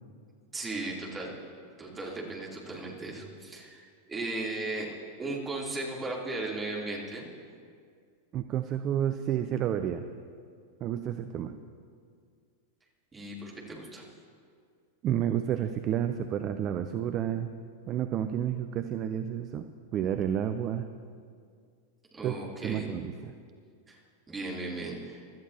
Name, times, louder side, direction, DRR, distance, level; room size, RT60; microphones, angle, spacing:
voice 1, 0.5-1.3 1.8-4.9 5.2-7.3 13.1-14.0 22.1-22.9 23.9-24.0 24.3-25.2, right 2 dB, 15° right, -4 dB, 3.1 m, -36 dB
voice 2, 8.3-10.1 10.8-11.5 15.0-17.5 17.9-19.7 19.9-20.9 22.2-22.3 22.6-23.3, right 10 dB, 35° right, 9 dB, 0.6 m, -30 dB
24.5 x 13.0 x 2.9 m, 2.2 s
figure-of-eight pair, 90°, 0 cm